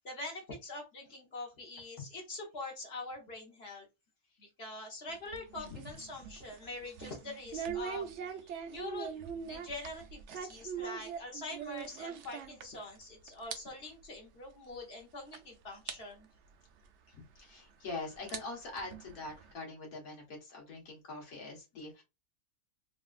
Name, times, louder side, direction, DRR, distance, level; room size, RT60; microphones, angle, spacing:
voice 1, 0.0-3.9 4.4-16.3, left 2 dB, 45° left, 0 dB, 1.2 m, -44 dB
sound 1, 5.1-13.0 13.3-13.6 13.9-14.0 14.7-14.8 15.3-15.4 15.9-16.0 17.3-17.4 18.1-19.5, right 7 dB, 65° right, 0.7 m, -42 dB
voice 2, 17.1-22.0, left 3 dB, 70° left, 0 dB, 1.7 m, -44 dB
3.5 x 2.5 x 2.4 m, 0.24 s
omnidirectional pair, 1.6 m